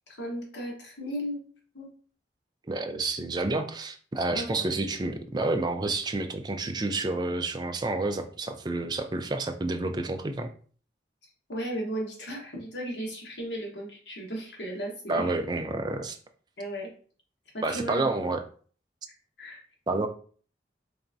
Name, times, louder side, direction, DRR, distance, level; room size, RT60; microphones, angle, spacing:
voice 1, 0.1-1.4 1.7-1.9 4.3-4.9 11.5-15.3 16.6-16.9 17.5-18.3 19.4-19.6, equal, 75° left, -1 dB, 1.2 m, -35 dB
voice 2, 2.7-10.5 15.1-16.2 17.6-18.4 19.9-20.1, right 2 dB, 25° right, 6 dB, 0.4 m, -29 dB
4.0 x 3.4 x 2.6 m, 0.44 s
head